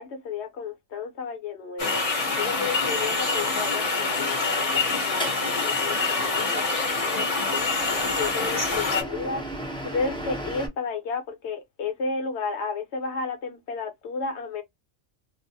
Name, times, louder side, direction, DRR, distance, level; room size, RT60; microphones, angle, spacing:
voice 1, 0.0-2.0 2.4-7.8 8.2-9.4 9.8-14.6, left 4 dB, 65° left, 1.0 m, -32 dB
sound 1, 1.8-9.0, left 3 dB, 35° left, 0.7 m, -25 dB
sound 2, 5.2-10.7, right 1 dB, 5° left, 0.4 m, -37 dB
2.5 x 2.1 x 2.6 m
omnidirectional pair, 1.3 m